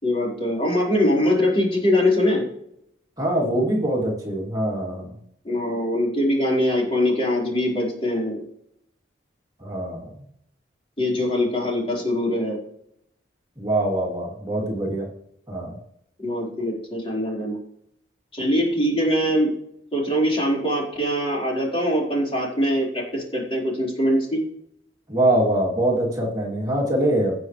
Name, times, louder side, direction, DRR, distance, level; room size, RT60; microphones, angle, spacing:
voice 1, 0.0-2.4 5.4-8.4 11.0-12.6 16.2-17.6 18.3-19.5 19.9-24.4, left 1 dB, 30° left, -4 dB, 4.3 m, -22 dB
voice 2, 3.2-5.1 9.6-10.1 13.6-15.1 15.5-15.8 25.1-27.3, right 1 dB, 20° right, -3 dB, 2.8 m, -23 dB
18.0 x 7.0 x 3.2 m, 0.72 s
head